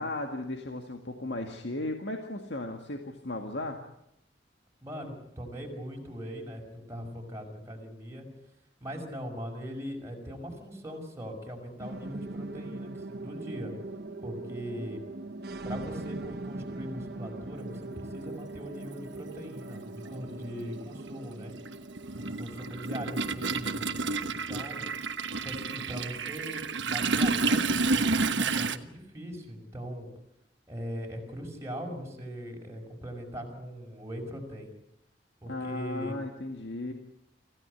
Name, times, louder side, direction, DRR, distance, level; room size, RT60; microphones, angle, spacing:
voice 1, 0.0-3.8 35.5-36.9, left 2 dB, 65° left, 4 dB, 2.0 m, -35 dB
voice 2, 4.8-8.3 8.8-13.7 14.2-15.0 15.6-21.5 22.1-23.9 24.3-24.9 25.4-30.1 30.7-34.7 35.4-36.2, equal, 15° right, 0 dB, 5.5 m, -40 dB
sound 1, 11.8-26.4, right 2 dB, 60° right, 1.2 m, -42 dB
Toilet flush, 18.3-18.4 19.6-19.8 20.1-28.8, right 3 dB, 80° right, 1.2 m, -30 dB
25.5 x 15.5 x 9.8 m, 0.81 s
head